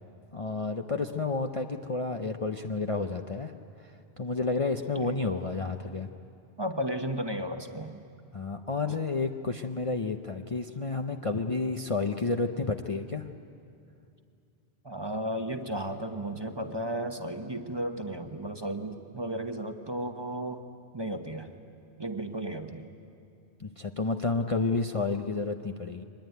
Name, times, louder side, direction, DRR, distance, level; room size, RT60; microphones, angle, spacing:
voice 1, 0.3-3.5 4.2-6.1 8.3-13.3 23.6-26.0, left 3 dB, 35° left, 4 dB, 0.7 m, -30 dB
voice 2, 6.6-8.0 14.8-20.6 20.9-21.5 22.0-22.9, right 1 dB, 25° right, 6 dB, 1.1 m, -34 dB
24.0 x 20.5 x 9.3 m, 2.5 s
omnidirectional pair, 1.1 m